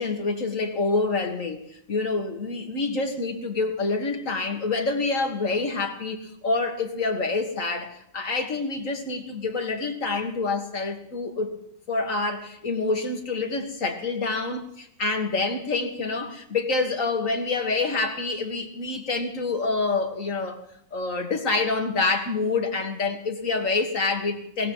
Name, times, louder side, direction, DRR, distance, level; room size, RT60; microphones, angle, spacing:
voice 1, 0.0-11.6 11.9-20.6 20.9-24.7, left 3 dB, 40° left, 4 dB, 1.8 m, -27 dB
22.5 x 18.5 x 3.1 m, 0.69 s
omnidirectional pair, 2.2 m